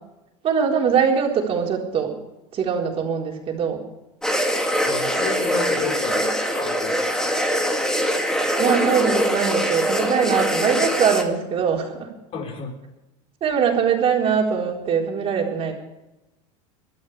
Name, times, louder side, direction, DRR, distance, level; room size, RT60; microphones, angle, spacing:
voice 1, 0.4-2.1 2.5-3.8 6.2-6.3 8.5-12.1 13.4-15.7, right 7 dB, 35° right, 0 dB, 4.1 m, -22 dB
sound 1, 4.2-11.2, equal, 5° left, 2.5 m, -23 dB
voice 2, 4.8-7.1 12.3-12.7, left 5 dB, 40° left, 1 dB, 4.7 m, -31 dB
23.5 x 13.0 x 3.4 m, 0.98 s
supercardioid pair, 130°, 17 cm